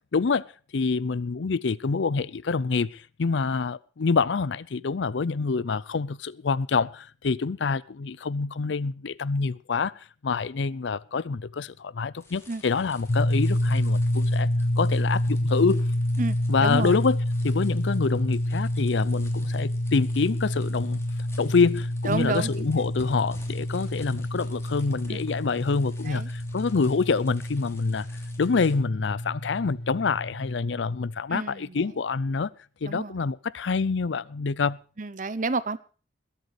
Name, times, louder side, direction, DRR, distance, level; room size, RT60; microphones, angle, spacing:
voice 1, 0.1-0.4 0.7-9.9 10.2-14.5 14.8-15.9 16.5-17.2 17.4-21.0 21.4-28.1 28.4-32.5 32.8-34.8, left 4 dB, 75° left, 0.5 m, -26 dB
sound 1, 12.2-28.8, left 2 dB, 15° left, 3.0 m, -52 dB
sound 2, 13.1-30.9, left 1 dB, 60° left, 1.1 m, -28 dB
voice 2, 16.2-17.0 22.0-22.9 25.1-25.2 26.0-26.3 31.3-31.9 32.8-33.2 35.0-35.8, right 3 dB, 45° right, 0.8 m, -30 dB
21.0 x 8.3 x 5.0 m
head